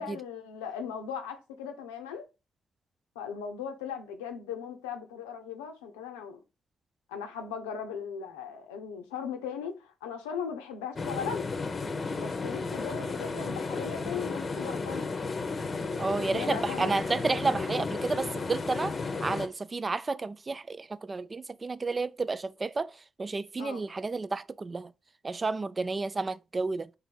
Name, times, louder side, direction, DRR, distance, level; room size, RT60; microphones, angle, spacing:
voice 1, 0.0-2.2 3.2-6.4 7.1-11.5 12.1-15.1 16.3-16.9 23.6-23.8, left 7 dB, 90° left, 0.6 m, -38 dB
sound 1, 11.0-19.5, left 4 dB, 45° left, 0.7 m, -33 dB
voice 2, 16.0-22.9 23.2-24.9 25.2-26.9, right 3 dB, 35° right, 0.3 m, -31 dB
3.8 x 2.6 x 4.5 m
hypercardioid pair, 45°, 0 cm